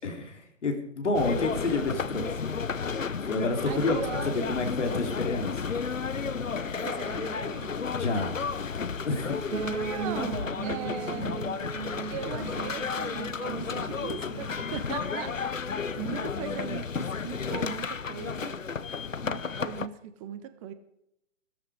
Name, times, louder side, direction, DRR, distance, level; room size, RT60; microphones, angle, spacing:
voice 1, 0.0-2.5 3.1-5.8 8.0-8.4 9.0-9.5, left 2 dB, 65° left, 4 dB, 3.7 m, -29 dB
sound 1, 1.1-19.9, left 5 dB, 80° left, 0.9 m, -33 dB
voice 2, 3.7-4.6 6.8-7.7 9.8-11.5 12.1-18.6 19.2-20.7, right 10 dB, 25° right, 11 dB, 1.2 m, -39 dB
sound 2, 9.5-15.4, right 5 dB, 90° right, 1.0 m, -38 dB
16.5 x 13.5 x 5.0 m, 0.77 s
figure-of-eight pair, 125°, 38 cm